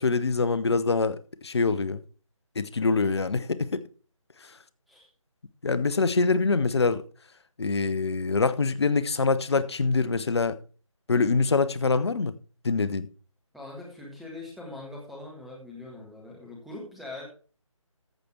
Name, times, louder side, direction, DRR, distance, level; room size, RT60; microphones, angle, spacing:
voice 1, 0.0-2.0 2.6-3.8 5.6-7.0 7.6-10.6 11.1-12.3 12.6-13.1, left 4 dB, 50° left, 0.9 m, -24 dB
voice 2, 13.5-17.3, left 2 dB, ahead, 0.4 m, -42 dB
14.5 x 5.0 x 4.4 m
figure-of-eight pair, 155°, 17 cm